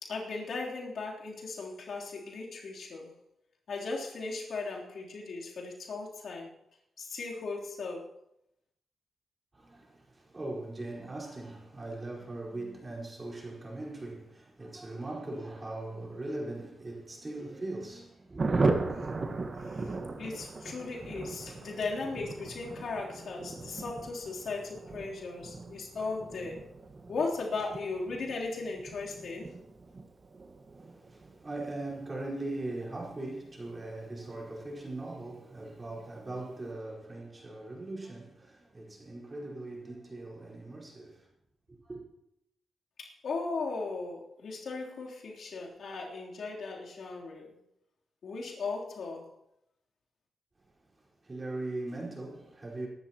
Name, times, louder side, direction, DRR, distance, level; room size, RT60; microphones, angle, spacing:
voice 1, 0.0-3.2 3.7-6.5 7.0-8.2 19.7-19.9 20.2-26.6 27.1-29.5 43.0-47.6 48.2-49.3, left 3 dB, 70° left, 3.5 m, -37 dB
voice 2, 9.5-18.7 30.7-41.3 41.7-42.0 51.2-52.9, right 2 dB, 30° right, 4.8 m, -40 dB
Thunder, 18.4-34.5 34.8-34.9 35.2-35.3 35.6-36.0, right 3 dB, 45° right, 1.6 m, -37 dB
23.5 x 12.0 x 3.0 m
cardioid pair, 80°, 0 cm